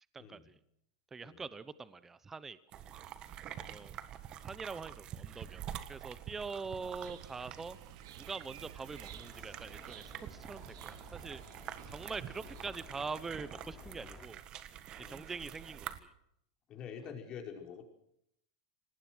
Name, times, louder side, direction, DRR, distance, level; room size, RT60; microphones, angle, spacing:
voice 1, 0.1-0.6 1.1-2.8 3.7-3.9 4.4-7.8 8.2-11.4 11.9-14.4 15.1-16.1, right 4 dB, 15° right, 16 dB, 0.8 m, -44 dB
sound 1, 2.7-16.0, right 10 dB, 35° right, 1.6 m, -47 dB
sound 2, 6.8-12.6, right 11 dB, 70° right, 2.2 m, -54 dB
sound 3, 8.9-14.3, left 4 dB, 10° left, 4.8 m, -55 dB
voice 2, 15.0-15.3 16.7-17.8, left 7 dB, 35° left, 2 dB, 5.1 m, -47 dB
26.0 x 19.5 x 6.3 m, 0.76 s
supercardioid pair, 130°, 2 cm